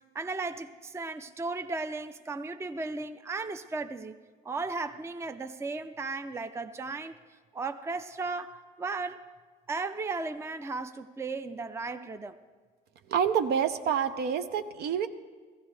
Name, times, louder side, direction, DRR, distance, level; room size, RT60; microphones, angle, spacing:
voice 1, 0.1-4.2 4.4-9.3 9.7-12.4, right 3 dB, 15° right, 0.5 m, -35 dB
voice 2, 13.1-15.1, right 7 dB, 70° right, 0.7 m, -27 dB
16.0 x 15.5 x 3.3 m
cardioid pair, 110°, 17 cm